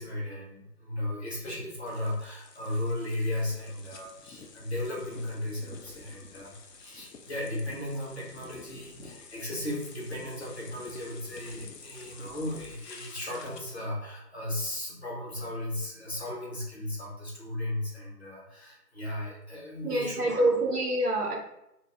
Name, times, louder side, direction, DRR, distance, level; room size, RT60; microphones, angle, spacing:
voice 1, 0.0-20.8, left 1 dB, 40° left, -4 dB, 0.8 m, -36 dB
sound 1, 1.9-13.9, left 5 dB, 75° left, 0.6 m, -50 dB
voice 2, 19.8-21.4, right 1 dB, 65° right, -1 dB, 0.8 m, -26 dB
2.2 x 2.0 x 3.2 m, 0.85 s
figure-of-eight pair, 160°, 49 cm